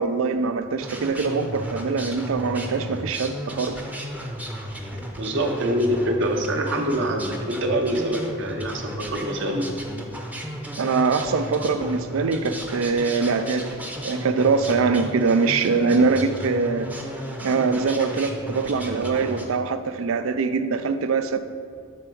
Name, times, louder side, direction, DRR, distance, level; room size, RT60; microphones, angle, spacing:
voice 1, 0.0-3.8 10.8-13.8 14.0-16.9 17.4-21.4, right 4 dB, 85° right, 11 dB, 0.4 m, -23 dB
sound 1, 0.8-19.5, equal, 10° right, 0.6 m, -34 dB
voice 2, 5.2-9.7, right 1 dB, 65° right, 3 dB, 0.8 m, -25 dB
7.9 x 3.4 x 6.2 m, 2.2 s
head